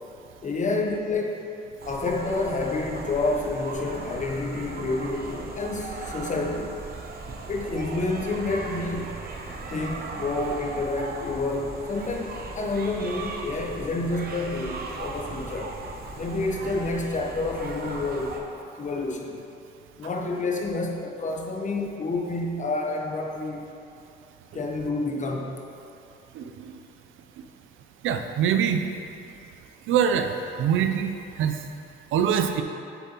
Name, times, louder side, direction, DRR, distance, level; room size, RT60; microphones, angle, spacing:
voice 1, 0.4-1.5 1.9-6.8 7.5-9.2 9.7-15.7 16.2-18.4 18.8-19.4 20.0-23.6 24.5-25.6, left 3 dB, 40° left, 1 dB, 0.9 m, -29 dB
sound 1, 1.8-18.4, right 3 dB, 50° right, 0.8 m, -37 dB
voice 2, 26.3-26.7 28.0-28.8 29.9-30.3 30.6-31.5 32.1-32.6, right 8 dB, 80° right, 6 dB, 0.5 m, -24 dB
7.4 x 7.0 x 2.9 m, 2.7 s
cardioid pair, 90°, 20 cm